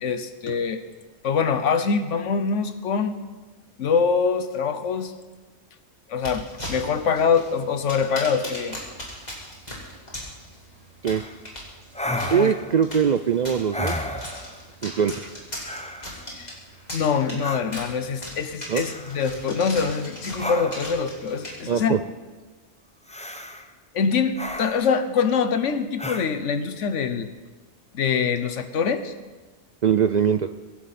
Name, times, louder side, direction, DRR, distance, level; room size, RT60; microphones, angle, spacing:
voice 1, 0.0-0.8 1.2-3.2 3.8-5.1 6.1-8.8 12.3-12.5 16.3-16.5 16.9-22.0 23.9-27.3 27.9-29.1, left 6 dB, 85° left, 10 dB, 1.3 m, -24 dB
sound 1, 6.1-21.9, equal, 35° left, 3.5 m, -39 dB
sound 2, 11.1-11.3 11.9-12.8 13.7-14.6 15.6-16.2 17.4-17.6 18.8-19.3 20.4-21.0 23.1-23.7 24.4-25.0 26.0-26.3, left 1 dB, 5° left, 0.7 m, -32 dB
voice 2, 12.3-14.0 14.8-15.3 18.7-18.8 21.7-22.0 29.8-30.5, right 7 dB, 60° right, 9 dB, 0.4 m, -22 dB
23.5 x 11.5 x 4.2 m, 1.3 s
omnidirectional pair, 1.2 m